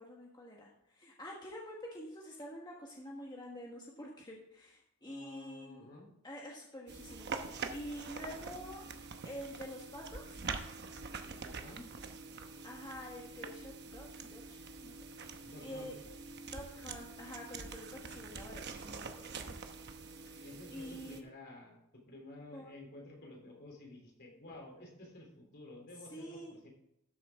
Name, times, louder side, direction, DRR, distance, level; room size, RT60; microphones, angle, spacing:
voice 1, 0.0-5.9 6.2-8.9 9.2-10.4 12.6-16.0 16.5-19.6 20.3-21.2 22.5-22.7 26.1-26.5, equal, 20° left, -2 dB, 1.4 m, -48 dB
voice 2, 5.0-6.1 11.2-11.9 15.4-15.9 19.7-19.9 20.4-26.7, left 2 dB, 50° left, 0 dB, 3.1 m, -52 dB
sound 1, 6.9-21.2, right 4 dB, 50° right, 0.9 m, -45 dB
13.0 x 7.4 x 3.6 m, 0.82 s
head